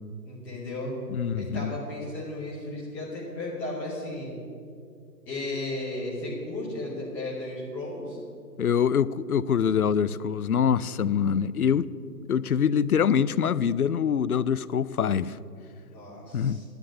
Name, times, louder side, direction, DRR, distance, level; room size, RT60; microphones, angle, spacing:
voice 1, 0.2-0.9 1.4-4.3 5.3-8.2 15.9-16.6, left 2 dB, 5° left, 0.9 m, -34 dB
voice 2, 1.1-1.8 8.6-11.9 12.3-15.4 16.3-16.6, left 7 dB, 60° left, 0.5 m, -24 dB
10.5 x 8.2 x 8.4 m
figure-of-eight pair, 155°, 50 cm